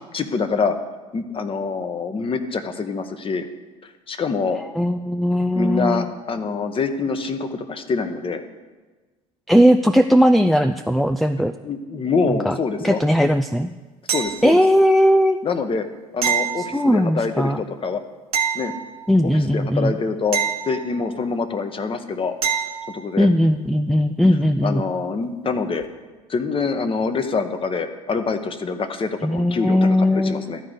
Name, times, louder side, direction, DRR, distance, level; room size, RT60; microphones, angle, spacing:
voice 1, 0.1-0.8 1.1-3.5 4.1-4.6 5.5-8.4 11.6-13.0 14.1-14.6 15.4-15.9 16.1-18.0 18.5-18.7 19.2-20.4 20.7-22.3 22.9-23.3 24.6-25.9 26.3-30.6, left 4 dB, 30° left, 8 dB, 1.1 m, -25 dB
voice 2, 4.7-6.1 9.5-11.5 12.3-12.5 12.8-13.7 14.4-15.4 16.6-17.6 19.1-20.0 23.2-24.8 29.2-30.5, equal, ahead, 9 dB, 0.4 m, -18 dB
sound 1, 14.1-14.8 16.2-17.3 18.3-19.4 20.3-21.3 22.4-23.0 25.8-25.9, right 8 dB, 80° right, 1.0 m, -26 dB
12.5 x 4.9 x 8.1 m, 1.3 s
figure-of-eight pair, 65°, 19 cm